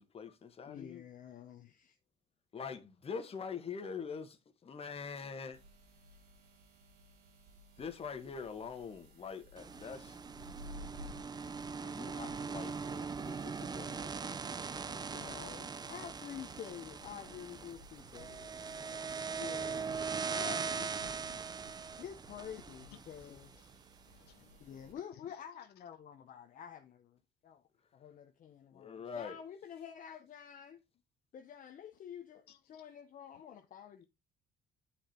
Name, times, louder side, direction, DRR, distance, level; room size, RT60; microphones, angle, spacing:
voice 1, 0.0-1.0 2.5-5.6 7.8-10.2 11.7-14.3 14.8-15.3 28.7-29.4, left 6 dB, 35° left, 1.5 m, -44 dB
voice 2, 0.6-2.0 15.1-19.9 20.1-20.9 22.0-23.5 24.6-27.6 27.9-30.8 31.3-34.0, left 8 dB, 50° left, 1.0 m, -49 dB
sound 1, 5.5-24.9, equal, 75° right, 2.9 m, -57 dB
sound 2, 9.6-23.7, right 5 dB, 25° right, 0.5 m, -41 dB
voice 3, 22.9-25.8 32.5-32.8, left 13 dB, 75° left, 0.8 m, -62 dB
8.8 x 5.0 x 4.3 m
cardioid pair, 110°, 17 cm